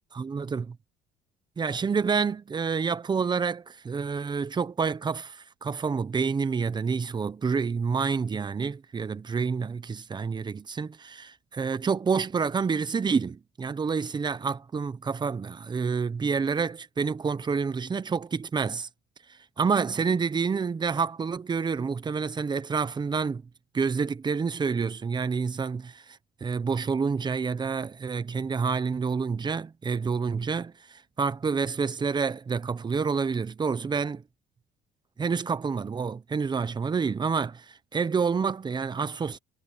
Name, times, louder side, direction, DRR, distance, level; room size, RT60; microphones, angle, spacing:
voice 1, 0.1-0.7 1.6-18.9 19.3-23.4 23.7-34.2 35.2-39.4, right 5 dB, 25° right, 1.0 m, -28 dB
cardioid pair, 110°, 17 cm